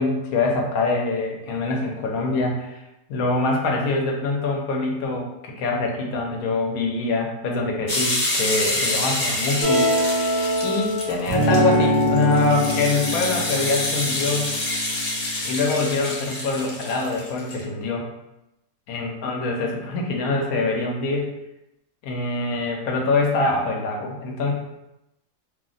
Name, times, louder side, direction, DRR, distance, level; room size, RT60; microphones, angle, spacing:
voice 1, 0.0-2.8 3.1-9.9 10.6-14.5 15.4-18.1 18.9-21.3 22.0-24.5, left 3 dB, 70° left, 0 dB, 1.0 m, -24 dB
sound 1, 7.9-17.6, left 1 dB, 50° left, 0.4 m, -27 dB
sound 2, 9.6-15.7, equal, 60° right, 0.4 m, -23 dB
2.7 x 2.1 x 3.8 m, 0.90 s
omnidirectional pair, 1.7 m